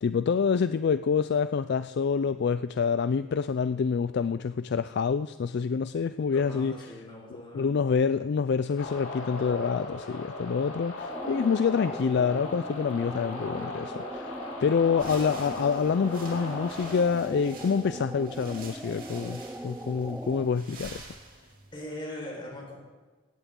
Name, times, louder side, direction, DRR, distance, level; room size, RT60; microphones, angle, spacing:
voice 1, 0.0-6.8 7.5-14.3 14.6-21.1, left 6 dB, 55° left, 12 dB, 0.4 m, -27 dB
voice 2, 6.3-7.7 21.7-22.8, left 1 dB, 25° left, -2 dB, 4.7 m, -40 dB
sound 1, 8.8-17.0, left 2 dB, 80° left, 3.4 m, -38 dB
sound 2, 11.0-20.6, right 1 dB, 10° right, 0.5 m, -40 dB
sound 3, 14.9-21.8, right 3 dB, 45° right, 3.1 m, -48 dB
18.5 x 15.0 x 3.8 m, 1.3 s
head